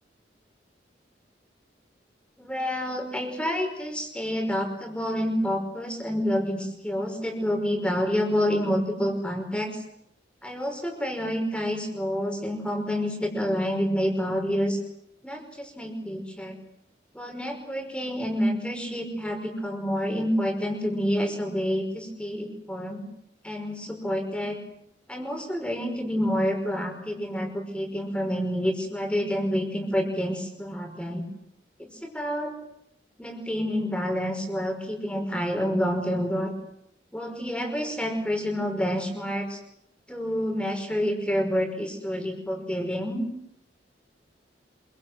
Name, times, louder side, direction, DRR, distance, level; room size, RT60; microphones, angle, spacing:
voice 1, 2.4-9.8 10.4-14.8 15.2-16.5 17.1-23.0 23.4-24.6 25.1-31.2 31.8-32.6 33.2-36.5 37.1-39.6 40.1-43.3, equal, 5° left, 3 dB, 5.5 m, -28 dB
27.5 x 24.5 x 7.8 m, 0.74 s
head